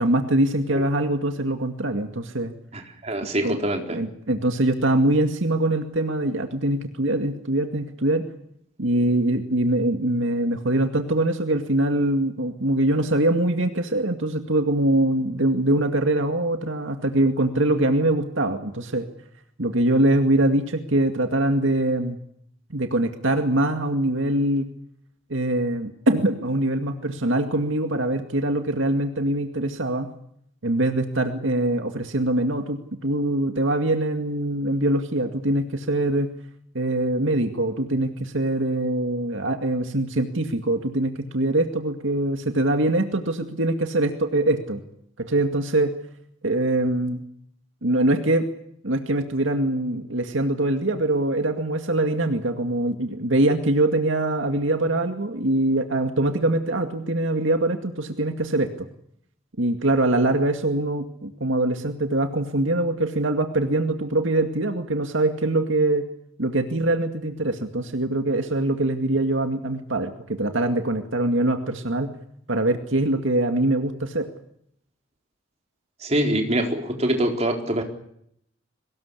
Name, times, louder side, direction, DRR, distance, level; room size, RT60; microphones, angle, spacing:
voice 1, 0.0-2.5 3.4-3.6 3.9-8.3 8.8-19.1 19.6-22.2 22.7-24.7 25.3-30.1 30.6-36.3 36.7-44.8 45.3-45.9 46.4-47.2 47.8-48.5 48.8-58.9 59.6-66.1 66.4-72.1 72.5-74.3, right 1 dB, 75° right, 5 dB, 2.2 m, -23 dB
voice 2, 2.7-4.0 76.0-77.8, right 1 dB, 35° right, 3 dB, 4.2 m, -24 dB
23.5 x 20.0 x 8.4 m, 0.71 s
head